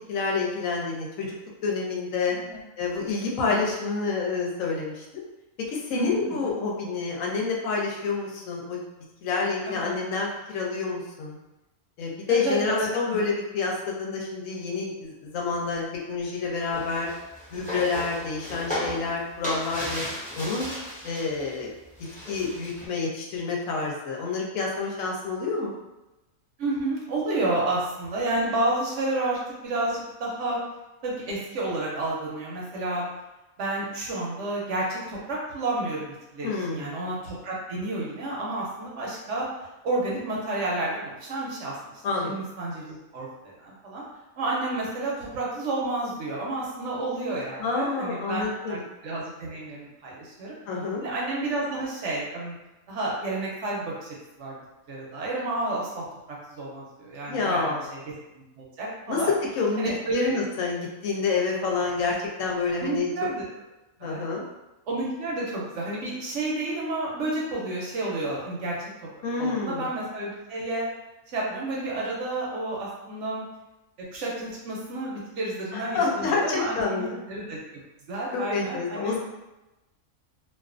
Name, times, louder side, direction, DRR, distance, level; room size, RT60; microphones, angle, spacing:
voice 1, 0.1-1.3 1.6-2.4 2.8-5.2 5.7-8.8 9.2-11.4 12.0-17.1 17.5-20.0 20.4-20.7 21.0-21.7 22.3-25.7 36.4-37.0 42.0-42.3 47.6-48.8 50.7-51.0 57.3-57.9 59.1-59.2 59.6-63.1 64.0-64.5 69.2-69.8 75.7-77.2 78.3-79.2, left 4 dB, 75° left, -1 dB, 0.9 m, -28 dB
voice 2, 3.3-3.7 5.9-6.6 9.6-10.0 12.3-13.2 26.6-30.6 31.0-33.1 33.6-39.5 39.8-44.0 44.4-50.5 51.0-52.6 52.9-54.1 54.4-54.6 54.9-56.0 56.5-57.7 58.3-59.3 59.8-60.3 62.8-63.4 64.0-64.2 64.9-68.8 69.4-70.9 71.3-73.4 74.0-77.6 78.1-79.2, right 2 dB, 65° right, -4 dB, 0.9 m, -30 dB
sound 1, 16.7-21.6 21.8-22.9, equal, 10° left, 0.4 m, -35 dB
2.4 x 2.3 x 2.4 m, 1.0 s
omnidirectional pair, 1.4 m